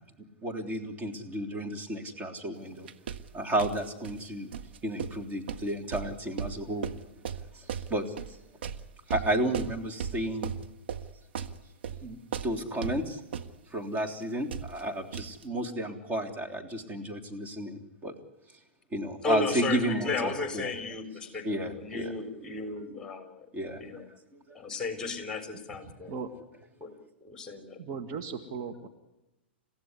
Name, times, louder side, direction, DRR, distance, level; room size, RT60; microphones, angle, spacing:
voice 1, 0.4-2.9 3.3-4.5 4.8-6.9 7.5-8.0 9.1-10.5 11.4-11.5 12.0-12.2 12.4-13.2 13.7-18.1 18.9-20.7 21.4-22.1 23.5-24.0 24.3-24.6, right 1 dB, 20° right, 2 dB, 3.4 m, -32 dB
sound 1, 2.9-4.2 4.5-13.5 14.0-14.1 14.2-14.3 14.5-14.8 15.1-15.4, right 7 dB, 60° right, 1.5 m, -37 dB
voice 2, 19.2-23.5 23.8-24.1 24.5-26.1 26.8-26.9 27.2-27.8, left 4 dB, 10° left, 6 dB, 4.1 m, -34 dB
voice 3, 27.8-28.9, right 5 dB, 40° right, 4 dB, 2.2 m, -37 dB
30.0 x 16.0 x 9.7 m, 0.99 s
figure-of-eight pair, 110°, 6 cm